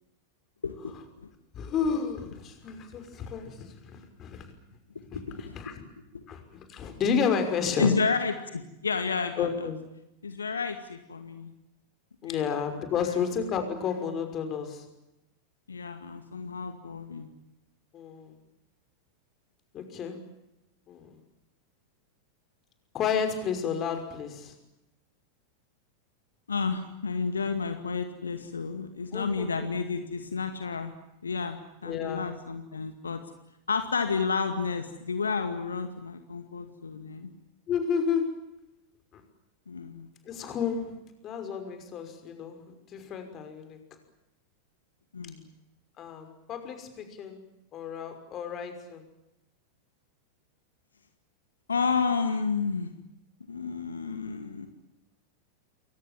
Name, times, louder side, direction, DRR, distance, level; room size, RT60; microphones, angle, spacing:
voice 1, 0.6-1.3 5.1-5.7 6.1-6.2 7.8-9.5 10.2-11.5 12.2-12.5 13.0-13.2 15.7-17.3 26.5-30.9 31.2-33.2 33.7-37.3 39.7-40.1 45.1-45.4 51.7-52.9 53.5-54.7, left 5 dB, 75° left, 7 dB, 2.1 m, -31 dB
voice 2, 1.5-4.5 5.1-5.8 6.3-8.0 9.4-9.8 12.2-14.9 17.9-18.3 19.7-20.2 20.9-21.2 22.9-24.5 29.1-29.5 31.8-32.4 37.7-38.5 39.1-39.2 40.3-41.0 41.2-42.6 42.9-43.8 46.0-47.4 47.7-49.0, left 6 dB, 30° left, 7 dB, 5.8 m, -31 dB
29.0 x 23.5 x 7.5 m, 0.91 s
figure-of-eight pair, 90°, 0 cm